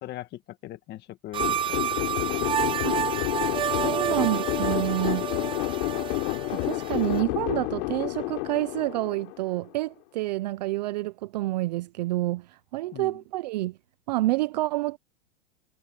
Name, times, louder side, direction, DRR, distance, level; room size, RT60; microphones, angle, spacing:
voice 1, 0.0-1.8 2.3-2.8 4.0-4.2 12.9-13.2, left 14 dB, 30° left, 1.8 m, -41 dB
sound 1, 1.3-7.2, right 10 dB, 15° right, 0.8 m, -30 dB
sound 2, 1.4-9.7, left 27 dB, 45° left, 3.8 m, -29 dB
voice 2, 3.7-5.3 6.5-13.8 14.1-15.0, right 18 dB, 35° right, 0.4 m, -28 dB
supercardioid pair, 150°, 37 cm